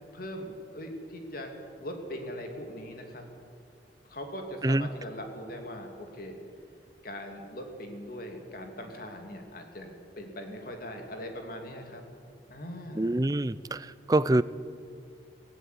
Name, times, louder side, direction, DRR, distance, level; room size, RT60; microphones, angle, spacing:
voice 1, 0.1-3.2 4.1-6.4 7.0-12.0 12.5-13.2, equal, 55° left, 4 dB, 3.0 m, -40 dB
voice 2, 13.0-14.4, right 1 dB, 20° right, 16 dB, 0.5 m, -25 dB
17.5 x 17.0 x 9.6 m, 2.3 s
head